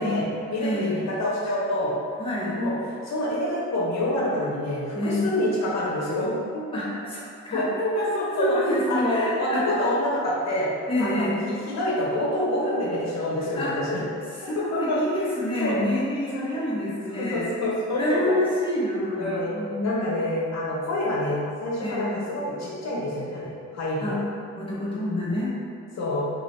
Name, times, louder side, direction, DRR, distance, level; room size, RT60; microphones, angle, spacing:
voice 1, 0.0-1.9 2.6-6.8 7.5-8.6 8.9-10.7 11.0-14.0 14.7-15.0 15.6-15.8 16.3-16.5 17.1-18.4 19.2-19.6 19.8-24.2 26.0-26.3, left 1 dB, 60° left, -5 dB, 1.0 m, -27 dB
voice 2, 0.6-1.0 2.2-2.6 4.9-5.3 6.7-7.6 8.4-9.8 10.9-11.4 13.5-14.0 14.4-17.5 17.9-20.1 21.8-22.2 24.0-24.1 24.6-25.6, left 1 dB, 15° left, -7 dB, 1.0 m, -27 dB
3.1 x 2.6 x 3.2 m, 2.3 s
cardioid pair, 90°, 30 cm